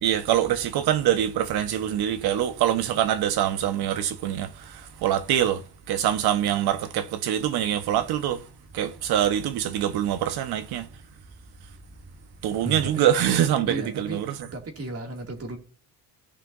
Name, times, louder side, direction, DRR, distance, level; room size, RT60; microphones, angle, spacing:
voice 1, 0.0-5.6 5.9-8.4 8.7-10.9 12.4-14.3, right 11 dB, 75° right, 1.2 m, -24 dB
voice 2, 12.6-13.1 13.7-14.2 14.5-15.6, right 2 dB, 40° right, 2.4 m, -34 dB
17.0 x 5.7 x 2.6 m
cardioid pair, 130°, 38 cm